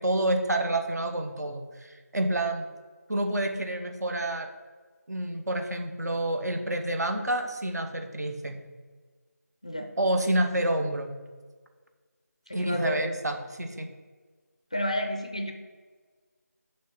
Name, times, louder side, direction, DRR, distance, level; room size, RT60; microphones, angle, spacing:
voice 1, 0.0-2.7 3.1-4.5 5.1-8.6 10.0-11.1 12.5-13.9, right 1 dB, 75° right, 5 dB, 1.0 m, -28 dB
voice 2, 12.5-13.1 14.7-15.5, left 1 dB, 20° left, 4 dB, 0.4 m, -31 dB
6.5 x 3.3 x 5.8 m, 1.5 s
figure-of-eight pair, 175°, 9 cm